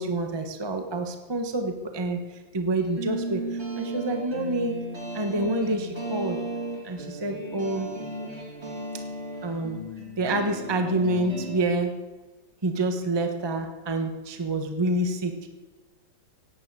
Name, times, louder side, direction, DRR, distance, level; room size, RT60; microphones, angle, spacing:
voice 1, 0.0-4.8 5.1-6.4 6.8-7.9 8.9-9.0 9.4-9.8 10.2-11.9 12.6-15.4, right 2 dB, 15° right, 6 dB, 1.0 m, -27 dB
sound 1, 2.8-11.6, right 2 dB, 35° right, 3.4 m, -35 dB
16.5 x 9.4 x 8.3 m, 1.3 s
omnidirectional pair, 2.1 m